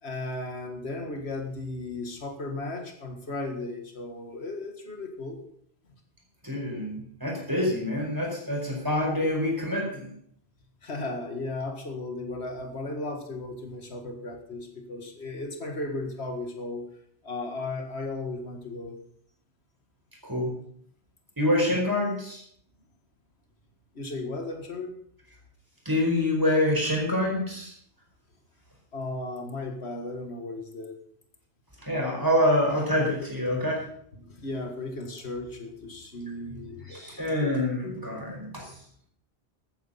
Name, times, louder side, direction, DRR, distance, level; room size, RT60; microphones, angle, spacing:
voice 1, 0.0-5.4 10.8-16.9 17.2-19.0 24.0-25.0 28.9-31.0 34.1-37.5 37.8-38.1, left 2 dB, 80° left, 4 dB, 2.1 m, -35 dB
voice 2, 6.4-10.1 20.2-20.5 21.4-22.4 25.8-27.7 31.8-33.8 36.9-38.7, left 1 dB, 20° right, -1 dB, 5.0 m, -26 dB
14.0 x 9.4 x 5.7 m, 0.64 s
omnidirectional pair, 1.1 m